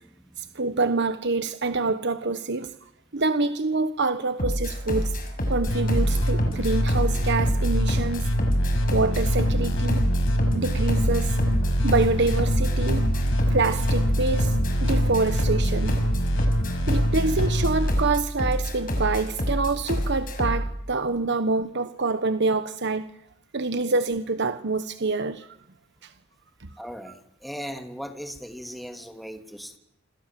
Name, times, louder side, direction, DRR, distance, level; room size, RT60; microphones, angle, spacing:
voice 1, 0.4-2.7 3.1-5.2 5.5-8.3 8.9-10.0 10.5-11.4 11.8-13.2 13.5-16.0 16.9-23.0 23.5-25.6 26.0-26.1 26.6-26.7, right 3 dB, 60° right, 10 dB, 1.3 m, -26 dB
sound 1, 4.4-20.7, equal, 45° left, 6.4 m, -27 dB
sound 2, 5.7-17.9, equal, 70° left, 5.2 m, -24 dB
voice 2, 26.8-29.8, equal, ahead, 5 dB, 3.0 m, -38 dB
28.5 x 27.0 x 7.6 m, 0.81 s
head